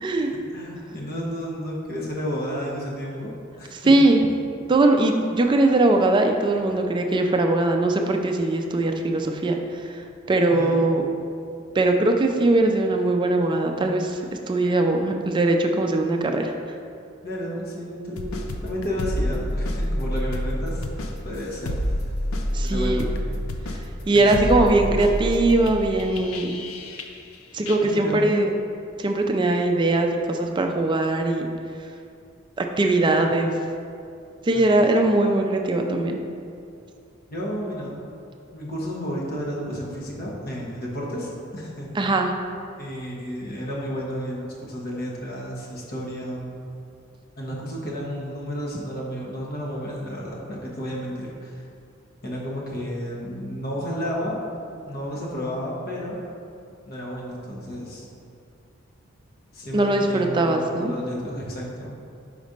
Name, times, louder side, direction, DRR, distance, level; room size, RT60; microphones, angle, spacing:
voice 1, 0.0-0.3 3.8-4.2 4.7-10.0 10.3-11.0 11.7-14.2 14.5-16.8 22.5-23.0 24.1-26.6 27.5-28.6 29.0-31.5 32.6-33.6 34.4-36.2 42.0-42.3 59.7-60.9, right 2 dB, 25° right, 3 dB, 0.4 m, -21 dB
voice 2, 0.5-3.3 3.6-4.0 10.3-10.8 17.2-20.9 21.2-21.7 22.6-23.0 24.1-24.9 27.8-28.2 34.5-34.6 37.3-38.0 38.5-42.2 42.8-46.5 47.4-51.6 52.2-54.4 54.8-56.2 56.9-58.1 59.5-61.9, equal, 45° left, -3 dB, 1.1 m, -32 dB
sound 1, 18.2-27.4 27.7-27.8, equal, 85° left, 0.5 m, -28 dB
5.1 x 4.1 x 5.1 m, 2.4 s
head